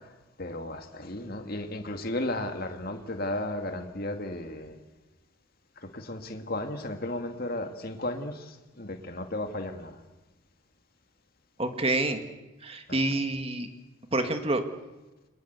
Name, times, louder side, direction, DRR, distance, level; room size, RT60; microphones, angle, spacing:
voice 1, 0.0-4.8 5.8-10.0 12.9-13.0, left 1 dB, 45° left, 5 dB, 2.3 m, -34 dB
voice 2, 11.6-12.2 12.6-13.7 14.1-14.6, right 2 dB, 30° right, 7 dB, 1.9 m, -27 dB
29.5 x 23.0 x 8.2 m, 1.1 s
head